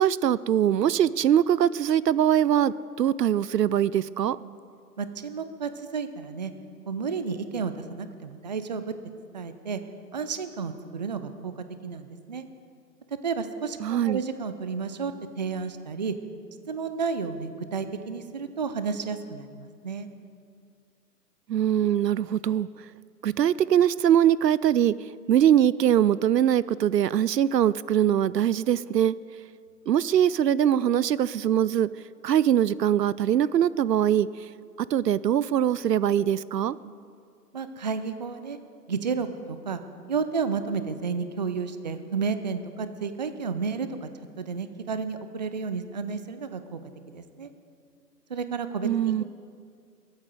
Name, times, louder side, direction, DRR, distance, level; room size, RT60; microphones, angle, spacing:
voice 1, 0.0-4.4 13.8-14.2 21.5-22.7 23.2-24.9 25.3-29.1 29.9-31.9 32.2-34.3 34.9-36.8 48.8-49.2, right 10 dB, 80° right, 20 dB, 0.5 m, -22 dB
voice 2, 5.0-6.5 6.9-8.9 9.3-9.8 10.1-12.4 13.2-16.1 16.7-20.1 36.8-37.0 37.5-38.6 38.9-39.8 40.1-44.1 44.4-46.8 47.1-47.5 48.3-49.2, right 5 dB, 30° right, 10 dB, 0.5 m, -32 dB
22.0 x 8.8 x 4.9 m, 2.2 s
figure-of-eight pair, 140°, 49 cm